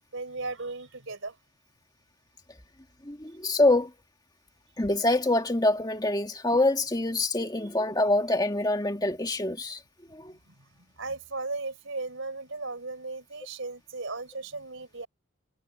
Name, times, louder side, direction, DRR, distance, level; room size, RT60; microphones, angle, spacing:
voice 1, 0.1-1.4 7.5-7.7 10.5-10.6 11.0-15.1, right 3 dB, 65° right, 3.7 m, -36 dB
voice 2, 3.0-3.9 4.8-9.8 10.1-10.3, left 2 dB, 20° left, 1.5 m, -25 dB
head